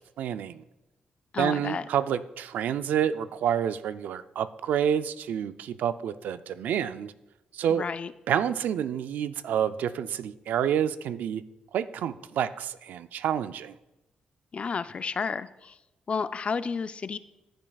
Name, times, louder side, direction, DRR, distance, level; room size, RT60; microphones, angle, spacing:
voice 1, 0.2-0.6 1.4-7.1 7.5-7.8 8.3-11.4 11.7-13.7, right 9 dB, 80° right, 13 dB, 0.4 m, -28 dB
voice 2, 1.3-1.9 7.7-8.1 14.5-15.8 16.1-17.2, left 5 dB, 45° left, 14 dB, 0.4 m, -31 dB
14.5 x 7.4 x 2.3 m, 0.96 s
cardioid pair, 75°, 3 cm